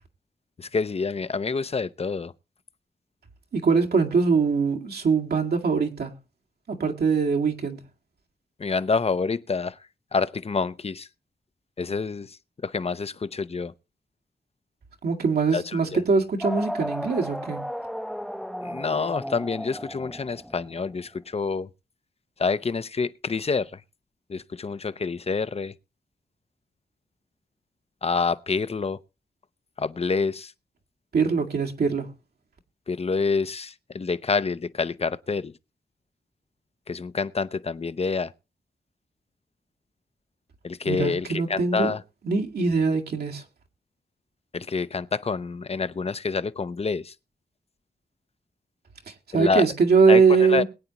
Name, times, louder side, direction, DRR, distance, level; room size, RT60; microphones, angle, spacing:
voice 1, 0.6-2.3 8.6-9.8 10.1-11.1 11.8-13.7 15.5-16.0 18.6-21.7 22.4-23.8 24.3-25.7 28.0-29.0 29.8-30.5 32.9-35.5 36.9-38.3 40.6-42.0 44.5-47.1 49.3-49.7 50.1-50.6, left 4 dB, 40° left, 0.7 m, -27 dB
voice 2, 3.5-6.1 6.7-7.8 15.0-17.6 31.1-32.1 40.8-41.9 42.2-43.4 49.3-50.6, right 5 dB, 80° right, 2.1 m, -22 dB
sound 1, 16.4-20.9, equal, ahead, 0.8 m, -34 dB
21.5 x 9.3 x 3.0 m
wide cardioid pair, 80°, 16 cm